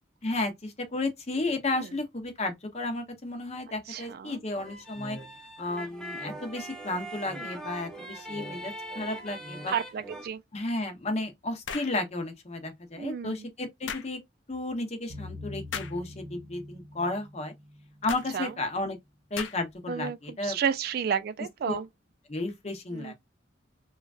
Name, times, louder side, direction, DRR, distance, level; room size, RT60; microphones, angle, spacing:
voice 1, 0.2-5.2 5.6-9.7 10.5-14.2 14.5-17.5 18.0-19.0 19.3-20.6 21.7-21.8 22.3-23.1, left 2 dB, 35° left, 0.7 m, -33 dB
voice 2, 3.9-4.4 7.3-7.5 9.7-10.4 13.0-13.5 18.3-18.5 19.9-21.9 22.9-23.1, right 7 dB, 55° right, 0.3 m, -32 dB
sound 1, 4.6-10.3, right 1 dB, 5° left, 0.6 m, -41 dB
sound 2, 11.6-12.0 13.9-14.1 15.7-16.0 18.1-18.3 19.4-19.8, left 7 dB, 75° left, 0.4 m, -36 dB
sound 3, 15.1-18.8, left 1 dB, 35° right, 0.9 m, -44 dB
3.1 x 2.3 x 2.4 m
head